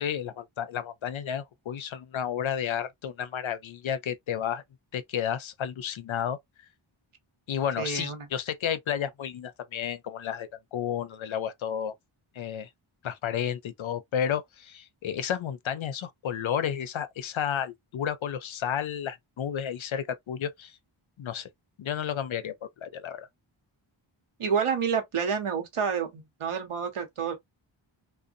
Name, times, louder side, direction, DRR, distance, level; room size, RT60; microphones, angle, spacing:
voice 1, 0.0-4.6 4.9-6.4 7.5-11.9 12.3-12.7 13.0-20.8 21.2-21.5 21.8-23.3, left 9 dB, 70° left, 0.5 m, -32 dB
voice 2, 7.8-8.3 24.4-27.3, right 6 dB, 80° right, 0.9 m, -29 dB
2.6 x 2.1 x 2.4 m
wide cardioid pair, 100°, 50 cm